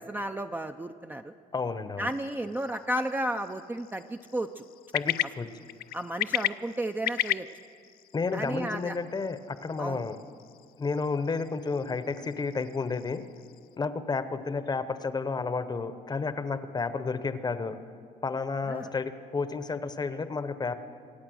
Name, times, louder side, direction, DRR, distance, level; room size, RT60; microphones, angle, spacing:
voice 1, 0.0-1.3 2.0-4.6 5.9-7.5 8.3-9.0 9.8-10.0 18.7-18.9, right 1 dB, 10° right, 6 dB, 0.4 m, -33 dB
voice 2, 1.5-2.1 4.9-5.5 8.1-10.2 10.8-13.2 13.8-17.8 18.2-20.7, left 4 dB, 25° left, 12 dB, 0.8 m, -31 dB
sound 1, 2.1-13.8, left 14 dB, 65° left, 0.4 m, -37 dB
24.5 x 8.7 x 6.3 m, 2.1 s
cardioid pair, 110°, 17 cm